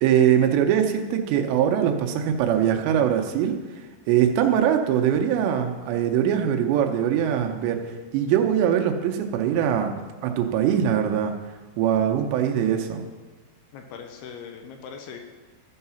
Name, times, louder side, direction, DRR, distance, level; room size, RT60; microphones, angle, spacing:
voice 1, 0.0-3.6 4.1-7.8 8.1-11.4 11.8-13.1, right 9 dB, 85° right, 4 dB, 3.0 m, -22 dB
voice 2, 13.7-15.2, left 6 dB, 80° left, 4 dB, 2.5 m, -40 dB
13.5 x 4.8 x 5.6 m, 1.3 s
omnidirectional pair, 4.9 m